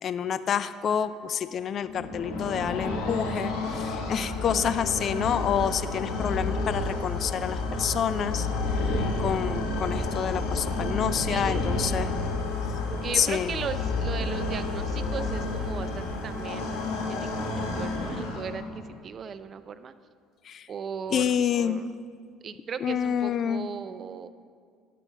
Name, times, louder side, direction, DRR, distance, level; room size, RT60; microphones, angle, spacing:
voice 1, 0.0-8.5 8.9-12.1 13.1-13.5 20.5-20.7 21.1-21.8 22.8-23.7, left 8 dB, 50° left, 14 dB, 0.3 m, -28 dB
sound 1, 1.8-18.8, left 2 dB, 70° left, 1.2 m, -30 dB
voice 2, 11.3-11.9 12.9-19.9 20.7-21.9 22.4-24.3, right 6 dB, 45° right, 13 dB, 0.4 m, -37 dB
10.5 x 7.5 x 3.9 m, 2.1 s
hypercardioid pair, 70°, 0 cm